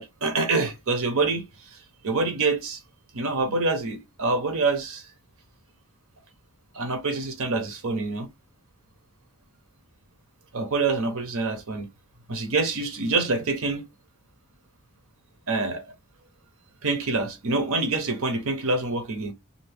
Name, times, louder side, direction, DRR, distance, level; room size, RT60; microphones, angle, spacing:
voice 1, 0.0-1.4 2.0-2.8 3.1-5.0 6.7-8.3 10.5-11.9 12.3-13.8 15.5-15.8 16.8-19.3, right 3 dB, 65° right, 0.8 m, -26 dB
2.6 x 2.6 x 3.3 m
head